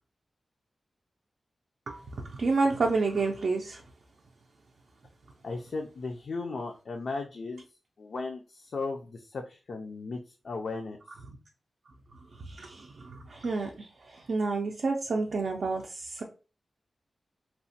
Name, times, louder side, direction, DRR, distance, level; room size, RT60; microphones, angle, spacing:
voice 1, 1.9-3.8 12.3-16.2, right 3 dB, 70° right, 1 dB, 0.4 m, -30 dB
voice 2, 5.4-7.7 8.0-11.0, left 3 dB, 70° left, 2 dB, 0.3 m, -36 dB
2.9 x 2.1 x 2.7 m, 0.35 s
wide cardioid pair, 100°, 0 cm